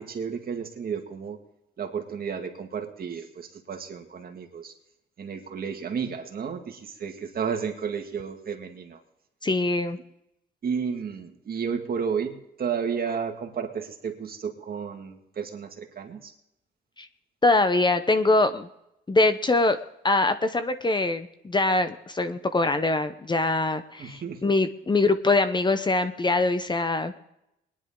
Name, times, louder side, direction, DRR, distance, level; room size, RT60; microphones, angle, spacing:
voice 1, 0.0-1.4 1.8-4.7 5.2-9.0 10.6-16.3 24.0-24.5, right 6 dB, 50° right, 4 dB, 1.9 m, -32 dB
voice 2, 9.4-10.0 17.0-17.1 17.4-18.7 19.1-19.8 20.0-27.1, left 2 dB, 20° left, 10 dB, 0.8 m, -23 dB
21.5 x 10.5 x 3.7 m, 0.83 s
cardioid pair, 90°, 20 cm